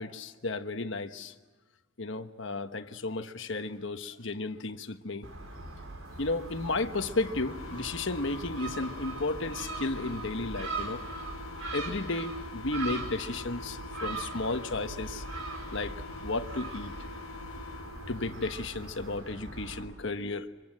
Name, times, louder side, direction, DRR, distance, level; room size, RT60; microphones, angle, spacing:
voice 1, 0.0-1.3 2.0-5.3 6.2-11.0 11.7-15.2 15.7-16.9 18.1-20.5, left 2 dB, 65° left, 8 dB, 1.2 m, -33 dB
Gull seagull, 5.2-19.8, right 3 dB, 85° right, 4.6 m, -40 dB
sound 1, 6.4-18.5, left 4 dB, 85° left, 1.1 m, -45 dB
25.5 x 23.5 x 7.8 m, 1.3 s
head